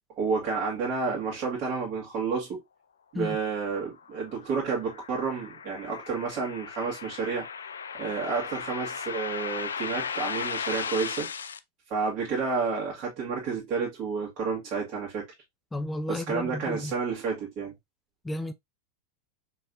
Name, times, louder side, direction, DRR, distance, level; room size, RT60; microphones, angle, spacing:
voice 1, 0.2-2.6 3.1-7.5 7.9-11.3 11.9-15.2 16.1-17.7, right 5 dB, 45° right, 1.7 m, -30 dB
sound 1, 3.8-11.6, left 6 dB, 80° left, 0.3 m, -36 dB
voice 2, 15.7-16.9 18.2-18.5, left 1 dB, 10° left, 0.5 m, -32 dB
4.6 x 3.2 x 2.6 m
hypercardioid pair, 95°, 0 cm